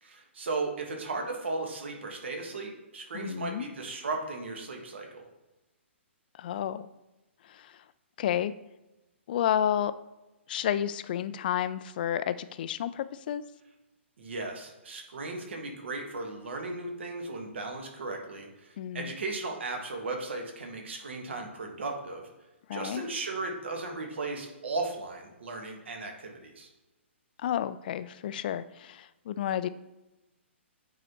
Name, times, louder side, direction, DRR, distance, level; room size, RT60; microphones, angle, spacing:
voice 1, 0.0-5.2 14.2-22.3 22.7-26.7, right 3 dB, 65° right, 2 dB, 1.5 m, -36 dB
voice 2, 3.1-3.7 6.4-6.9 7.5-7.8 8.2-8.5 9.3-9.9 10.5-13.4 18.8-19.1 22.7-23.0 27.4-29.7, left 10 dB, 45° left, 14 dB, 0.3 m, -31 dB
9.0 x 3.9 x 3.0 m, 1.0 s
figure-of-eight pair, 125°, 7 cm